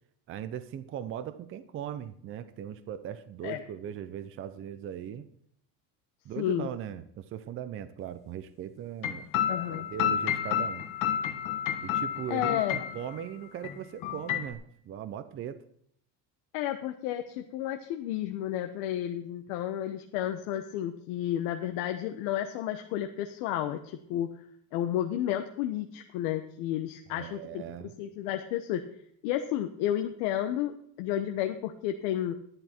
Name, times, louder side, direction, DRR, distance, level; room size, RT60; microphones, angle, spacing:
voice 1, 0.3-5.3 6.2-9.3 9.7-10.9 11.8-15.6 27.1-27.9, right 9 dB, 35° right, 12 dB, 0.6 m, -39 dB
voice 2, 6.4-6.7 9.5-9.9 12.3-12.8 16.5-24.3 24.7-27.6 28.0-28.8 29.2-32.3, left 11 dB, 85° left, 6 dB, 1.0 m, -31 dB
sound 1, 9.0-13.2 13.6-13.7 14.0-14.5, left 9 dB, 50° left, 1.3 m, -30 dB
11.0 x 11.0 x 4.4 m, 0.68 s
cardioid pair, 150°, 38 cm